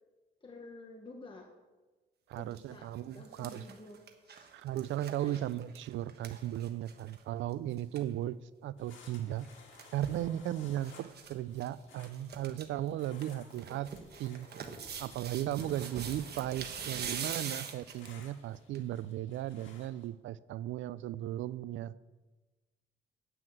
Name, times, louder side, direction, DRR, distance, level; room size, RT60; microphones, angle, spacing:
voice 1, 0.4-1.5 2.4-4.5 5.2-5.5, left 2 dB, 25° left, 1.2 m, -51 dB
sound 1, 2.3-2.6 3.0-7.2 7.5-7.6 7.8-8.0 9.3-10.2 10.8-11.3 11.6-11.7 12.0-12.6 13.0-18.2 18.7-18.8, right 7 dB, 55° right, 1.2 m, -43 dB
voice 2, 2.3-3.7 4.5-9.5 9.9-13.9 14.2-14.5 15.0-21.9, right 12 dB, 75° right, 0.4 m, -36 dB
sound 2, 8.8-20.1, left 4 dB, 75° left, 2.0 m, -59 dB
9.2 x 5.9 x 7.9 m
cardioid pair, 90°, 20 cm